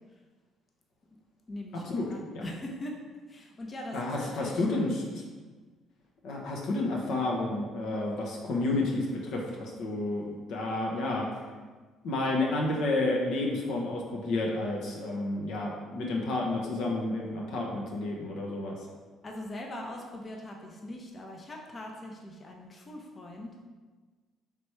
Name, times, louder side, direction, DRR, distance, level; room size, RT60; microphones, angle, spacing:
voice 1, 1.5-3.0 3.3-4.6 19.2-23.6, left 1 dB, 35° left, 0 dB, 0.7 m, -41 dB
voice 2, 3.9-5.2 6.2-11.2 12.0-18.8, left 2 dB, 70° left, -2 dB, 0.8 m, -30 dB
3.4 x 3.0 x 4.4 m, 1.4 s
hypercardioid pair, 60°, 0 cm